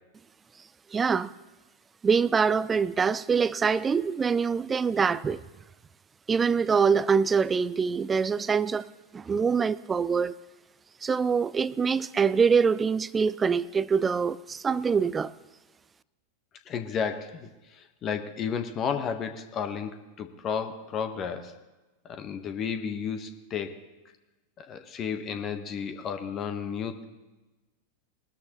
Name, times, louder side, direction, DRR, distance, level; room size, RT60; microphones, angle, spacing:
voice 1, 0.9-1.3 2.0-5.4 6.3-10.4 11.0-15.3, right 6 dB, 15° right, 0.4 m, -24 dB
voice 2, 16.7-21.6 22.0-23.8 24.6-27.0, left 7 dB, 30° left, 1.1 m, -33 dB
21.0 x 13.0 x 3.0 m
figure-of-eight pair, 90°, 0 cm